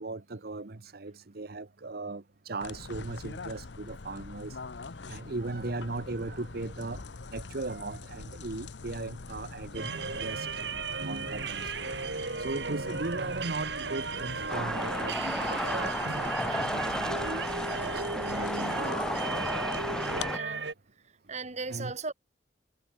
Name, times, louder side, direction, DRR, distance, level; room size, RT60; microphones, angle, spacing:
voice 1, 0.0-4.6 5.1-7.0 7.3-10.5 11.0-11.9 12.4-15.2 15.5-17.4 17.8-18.9 21.7-21.9, right 2 dB, 60° right, 1.1 m, -38 dB
sound 1, 2.6-20.3, left 3 dB, 80° left, 0.9 m, -44 dB
sound 2, 9.7-20.7, right 4 dB, 80° right, 2.7 m, -35 dB
sound 3, 14.5-20.4, left 1 dB, 5° left, 0.5 m, -33 dB
voice 2, 20.3-20.7 21.3-22.1, right 4 dB, 40° right, 3.7 m, -37 dB
head